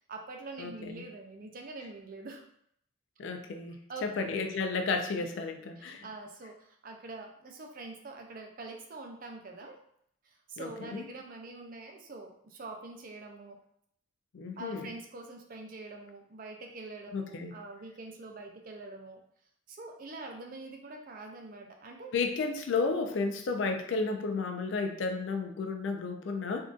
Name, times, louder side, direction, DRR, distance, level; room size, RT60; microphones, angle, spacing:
voice 1, 0.0-2.4 3.9-4.3 5.2-5.3 5.8-9.8 10.2-13.6 14.6-19.2 19.7-22.1, right 3 dB, 45° right, 3 dB, 0.5 m, -45 dB
voice 2, 0.6-1.0 3.2-3.7 4.0-6.1 10.6-11.1 14.3-14.9 17.1-17.5 22.1-26.6, left 4 dB, 65° left, 5 dB, 0.4 m, -32 dB
3.6 x 2.5 x 2.4 m, 0.69 s
head